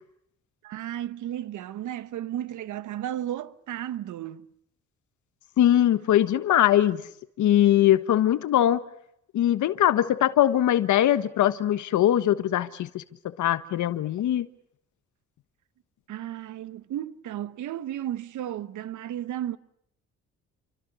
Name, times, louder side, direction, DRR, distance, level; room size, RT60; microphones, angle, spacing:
voice 1, 0.6-4.5 16.1-19.6, right 11 dB, 75° right, 1.2 m, -34 dB
voice 2, 5.6-7.0 7.4-8.8 9.3-14.5, left 12 dB, 75° left, 1.3 m, -21 dB
28.5 x 25.0 x 6.9 m
cardioid pair, 90°, 30 cm